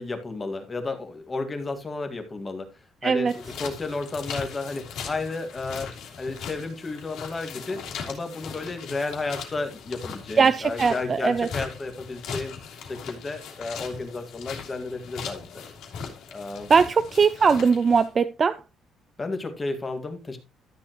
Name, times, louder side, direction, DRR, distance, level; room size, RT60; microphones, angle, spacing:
voice 1, 0.0-2.7 3.0-5.9 6.2-12.5 12.8-15.4 16.3-16.7 19.2-20.4, left 3 dB, 20° left, 1.8 m, -32 dB
voice 2, 3.0-3.3 10.4-11.5 16.7-18.6, right 5 dB, 30° right, 0.4 m, -20 dB
sound 1, 3.3-18.1, left 6 dB, 75° left, 2.8 m, -39 dB
13.0 x 7.1 x 3.0 m
cardioid pair, 150°, 0 cm